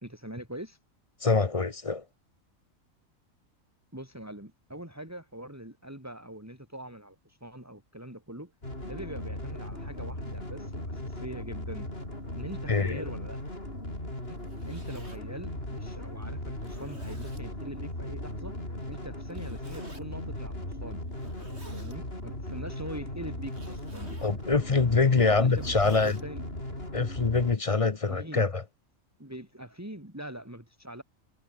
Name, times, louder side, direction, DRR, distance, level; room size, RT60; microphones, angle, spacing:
voice 1, 0.0-0.8 3.9-8.5 8.8-11.9 12.4-13.4 14.3-18.6 18.9-21.0 21.7-24.2 25.3-26.4 28.1-28.5 29.2-31.0, right 1 dB, 10° right, 4.5 m, -43 dB
voice 2, 1.2-2.0 12.7-13.0 24.2-26.2 26.9-28.6, left 4 dB, 30° left, 0.8 m, -25 dB
sound 1, 8.6-27.6, left 1 dB, 45° left, 8.3 m, -38 dB
Zipper (clothing), 14.3-15.2 15.9-16.0 16.6-17.5 19.3-20.0 21.1-22.0 23.4-24.4 25.1-26.2, right 1 dB, 50° right, 7.5 m, -52 dB
omnidirectional pair, 1.4 m